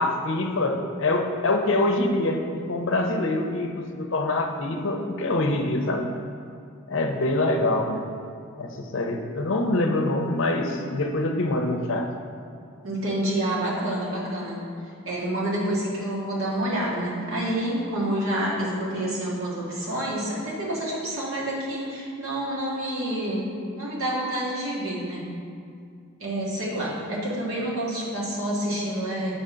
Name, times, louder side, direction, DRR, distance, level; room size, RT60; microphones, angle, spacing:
voice 1, 0.0-6.1 6.9-8.1 8.6-12.1, left 2 dB, 55° left, 3 dB, 0.6 m, -25 dB
voice 2, 12.8-14.6 15.0-23.4 23.7-25.2 26.2-29.3, right 1 dB, 70° right, -6 dB, 1.7 m, -28 dB
6.7 x 3.8 x 5.6 m, 2.4 s
head